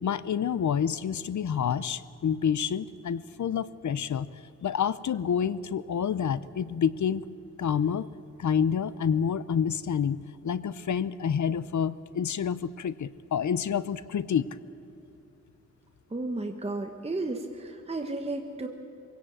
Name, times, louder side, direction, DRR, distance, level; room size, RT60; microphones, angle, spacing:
voice 1, 0.0-4.3 4.6-7.2 7.6-8.1 8.4-14.5, left 7 dB, 75° left, 17 dB, 0.7 m, -28 dB
voice 2, 16.1-18.7, right 2 dB, 20° right, 3 dB, 1.2 m, -33 dB
24.0 x 17.0 x 8.9 m, 2.9 s
wide cardioid pair, 165°, 30 cm